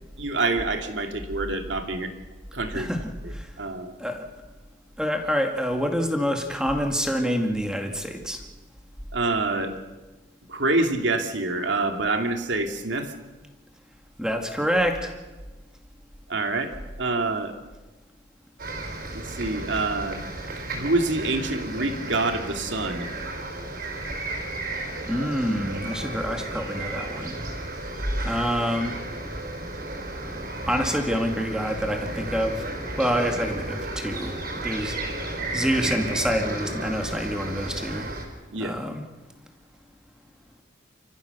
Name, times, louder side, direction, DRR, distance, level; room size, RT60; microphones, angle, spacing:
voice 1, 0.2-2.1 2.5-2.9 3.2-3.9 9.1-9.7 10.5-13.1 16.3-16.7 17.0-17.5 19.1-20.2 20.7-23.1 38.5-38.8, right 2 dB, 65° right, 5 dB, 2.4 m, -26 dB
voice 2, 2.7-3.5 4.0-4.3 5.0-8.4 14.2-15.1 25.1-27.3 28.2-29.0 30.7-32.6 33.0-38.1 38.6-39.0, equal, 5° right, 3 dB, 2.2 m, -27 dB
sound 1, 18.6-38.2, right 2 dB, 50° right, 4.8 m, -33 dB
29.5 x 14.5 x 6.8 m, 1.2 s
head